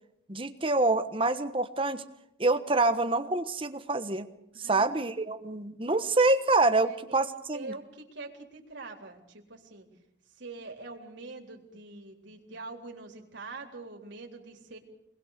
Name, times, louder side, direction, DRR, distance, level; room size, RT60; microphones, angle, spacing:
voice 1, 0.3-2.0 2.4-4.3 4.6-7.7, right 2 dB, 25° right, 9 dB, 1.2 m, -26 dB
voice 2, 4.5-5.2 6.8-7.2 7.5-9.9 10.4-14.8, right 3 dB, 65° right, 1 dB, 3.9 m, -44 dB
24.5 x 21.0 x 6.7 m, 0.80 s
head